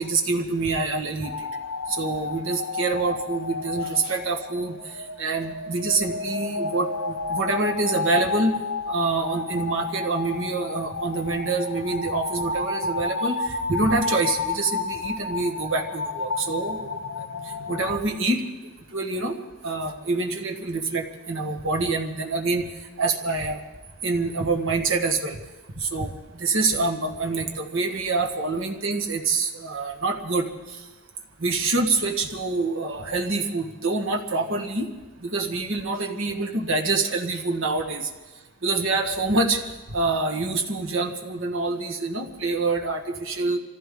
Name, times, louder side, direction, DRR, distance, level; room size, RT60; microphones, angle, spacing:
voice 1, 0.0-1.3 1.9-4.7 5.2-6.9 7.3-8.5 8.9-16.9 17.7-18.4 18.9-19.3 19.6-22.6 23.0-23.6 24.0-25.4 25.8-26.1 26.4-30.4 31.4-34.9 35.2-38.1 38.6-39.6 39.9-43.6, right 3 dB, 60° right, 4 dB, 1.6 m, -26 dB
sound 1, 1.2-18.0, left 4 dB, 85° left, 1.0 m, -31 dB
25.0 x 15.0 x 3.8 m, 1.2 s
head